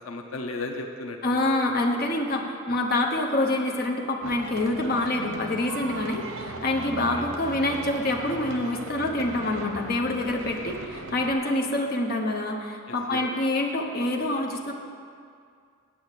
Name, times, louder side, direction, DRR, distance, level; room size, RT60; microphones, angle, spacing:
voice 1, 0.0-1.5 6.9-7.3 12.9-13.2, left 2 dB, 90° left, 4 dB, 0.8 m, -36 dB
voice 2, 1.2-14.7, left 2 dB, 45° left, 0 dB, 1.0 m, -26 dB
sound 1, 4.2-11.3, right 3 dB, 85° right, 0.8 m, -38 dB
8.6 x 6.3 x 8.2 m, 2.3 s
head